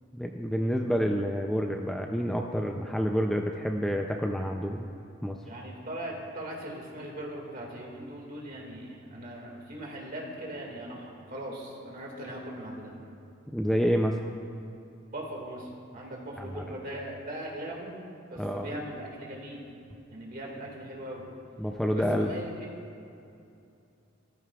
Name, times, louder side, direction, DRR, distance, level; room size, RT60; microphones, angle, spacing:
voice 1, 0.1-4.9 5.2-5.4 13.5-14.2 16.4-16.6 18.4-18.7 21.6-22.4, equal, ahead, 2 dB, 0.4 m, -28 dB
voice 2, 5.5-13.0 15.1-18.0 18.3-19.6 20.1-21.3 21.9-22.7, right 1 dB, 45° right, -1 dB, 1.9 m, -39 dB
16.0 x 14.0 x 2.3 m, 2.7 s
head